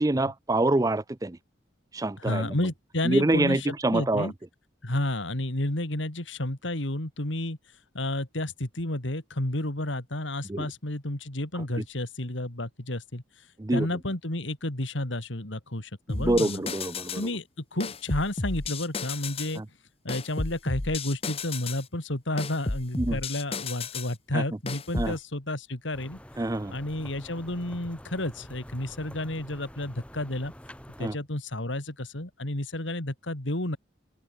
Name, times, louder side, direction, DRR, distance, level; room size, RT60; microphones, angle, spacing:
voice 1, 0.0-1.4 1.9-2.5 3.0-4.3 10.5-10.7 13.6-13.9 16.1-17.3 19.6-19.7 23.0-23.2 24.3-24.4 25.0-25.1 26.4-26.8 31.0-31.1, right 2 dB, 20° right, 0.5 m, -26 dB
voice 2, 2.2-4.3 4.8-7.6 7.9-13.2 13.7-16.6 17.1-19.6 20.0-26.2 26.7-30.5 31.0-33.8, left 1 dB, 75° left, 3.1 m, -31 dB
sound 1, 16.1-17.3 17.8-19.6 20.1-21.8 22.4-24.1 24.7-25.2, left 3 dB, 30° left, 1.1 m, -33 dB
sound 2, 25.9-31.1, equal, 5° left, 2.0 m, -46 dB
open air
head